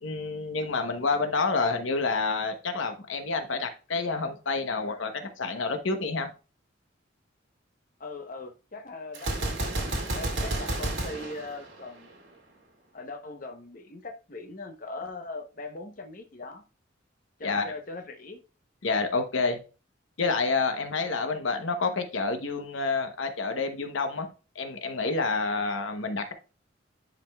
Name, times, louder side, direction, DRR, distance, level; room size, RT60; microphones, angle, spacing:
voice 1, 0.0-6.3 17.4-17.6 18.8-19.6 20.2-26.3, left 4 dB, 85° left, 0.9 m, -28 dB
voice 2, 8.0-12.1 12.9-16.6 17.4-18.4, left 3 dB, 45° left, 0.8 m, -40 dB
Gunshot gunfire, 9.1-12.3, right 1 dB, 65° right, 2.1 m, -31 dB
10.5 x 5.0 x 2.3 m
head